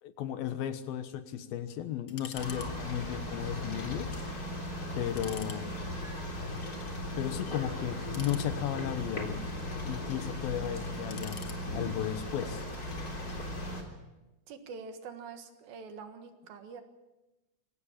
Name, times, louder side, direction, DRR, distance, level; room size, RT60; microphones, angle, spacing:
voice 1, 0.0-4.1 4.9-5.7 7.2-9.4 9.8-11.4 11.7-12.7, left 10 dB, 80° left, 10 dB, 3.0 m, -35 dB
sound 1, 2.1-2.7 3.0-3.1 3.7-4.1 4.5-4.6 5.0-5.6 6.5-7.1 8.0-8.9 9.4-10.2 10.9-12.0 12.7-13.4, left 7 dB, 55° left, 1.8 m, -49 dB
sound 2, 2.3-13.8, left 1 dB, 25° left, 3.7 m, -37 dB
voice 2, 14.5-16.8, right 5 dB, 75° right, 7 dB, 3.4 m, -45 dB
23.0 x 17.5 x 7.3 m, 1.0 s
omnidirectional pair, 4.2 m